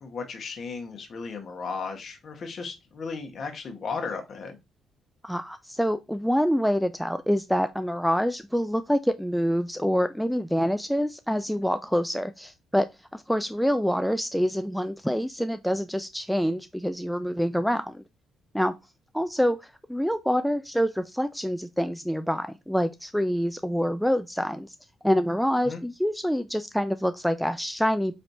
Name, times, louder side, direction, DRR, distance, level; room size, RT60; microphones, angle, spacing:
voice 1, 0.0-4.6 25.6-25.8, left 5 dB, 50° left, 1.2 m, -35 dB
voice 2, 5.2-12.9 13.1-18.0 18.5-18.7 19.1-19.6 19.9-24.7 25.0-28.2, equal, ahead, 0.3 m, -26 dB
4.3 x 3.2 x 2.6 m
cardioid pair, 90°, 0 cm